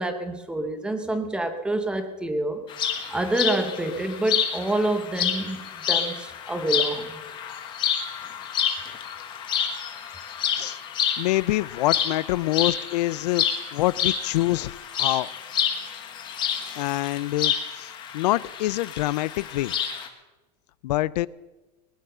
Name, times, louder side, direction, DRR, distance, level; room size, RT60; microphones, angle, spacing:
voice 1, 0.0-2.6 3.1-7.2, right 2 dB, 5° right, 8 dB, 0.8 m, -27 dB
sound 1, 2.7-20.1, left 8 dB, 20° left, 1.2 m, -29 dB
voice 2, 11.2-15.3 16.8-19.7 20.8-21.3, left 17 dB, 75° left, 20 dB, 0.4 m, -26 dB
20.0 x 10.0 x 6.7 m, 1.1 s
supercardioid pair, 175°, 21 cm